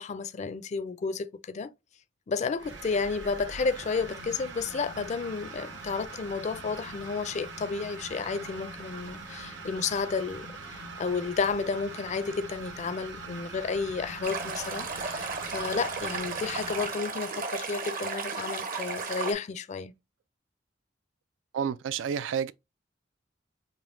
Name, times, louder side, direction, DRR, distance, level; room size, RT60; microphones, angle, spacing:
voice 1, 0.0-1.7 2.3-19.9, left 4 dB, 40° left, 0.4 m, -32 dB
sound 1, 2.6-16.9, right 3 dB, 70° right, 1.0 m, -42 dB
Stream, 14.2-19.3, right 4 dB, 50° right, 0.8 m, -34 dB
voice 2, 21.5-22.5, right 7 dB, 90° right, 0.3 m, -30 dB
5.2 x 2.7 x 2.6 m
head